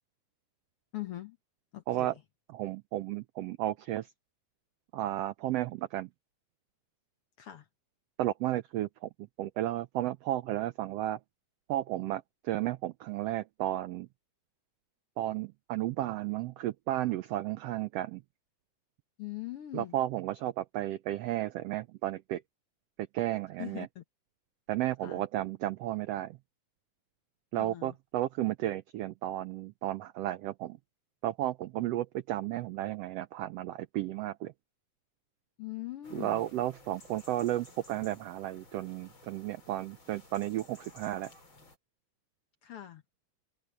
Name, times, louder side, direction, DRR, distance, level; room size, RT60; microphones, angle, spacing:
voice 1, 0.9-1.4 1.7-2.2 7.4-7.7 19.2-19.9 23.6-24.0 25.0-25.2 27.6-27.9 35.6-36.4 42.6-43.0, left 15 dB, 60° left, 1.7 m, -41 dB
voice 2, 2.5-4.1 4.9-6.1 8.2-11.2 11.7-14.1 15.2-18.2 19.7-22.4 23.0-23.9 24.7-26.4 27.5-30.8 31.2-34.5 36.1-41.3, right 14 dB, 85° right, 1.4 m, -33 dB
sound 1, 36.0-41.8, left 2 dB, 40° left, 6.2 m, -56 dB
omnidirectional pair, 3.5 m